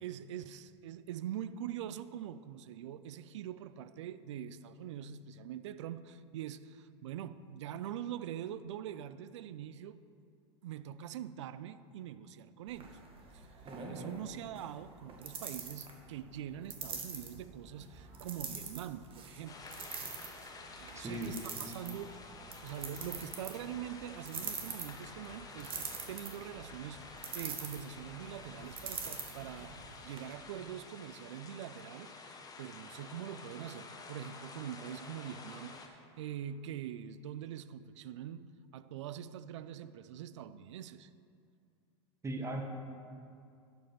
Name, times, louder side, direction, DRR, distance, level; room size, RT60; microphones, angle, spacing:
voice 1, 0.0-10.0 10.6-13.0 13.3-13.5 13.9-19.7 20.8-41.1, right 10 dB, 75° right, 0.4 m, -44 dB
sound 1, 12.7-30.2, right 5 dB, 35° right, 1.6 m, -45 dB
sound 2, 19.5-35.9, left 3 dB, 25° left, 1.1 m, -50 dB
voice 2, 20.9-21.3 42.2-42.6, right 2 dB, 20° right, 1.4 m, -37 dB
11.0 x 5.3 x 6.0 m
hypercardioid pair, 90°, 15 cm